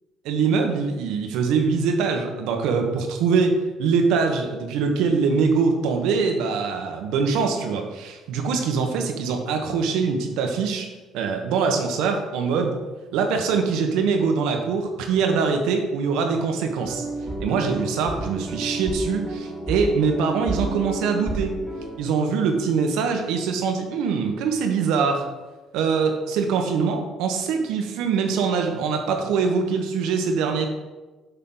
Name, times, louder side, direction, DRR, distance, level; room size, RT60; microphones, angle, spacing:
voice 1, 0.2-10.9 11.1-12.8 13.1-17.0 17.4-21.6 22.0-25.3 25.7-30.7, right 5 dB, 85° right, 4 dB, 1.1 m, -23 dB
sound 1, 16.8-22.0, right 1 dB, 15° right, 2.2 m, -31 dB
8.3 x 5.6 x 3.9 m, 1.2 s
cardioid pair, 105°, 0 cm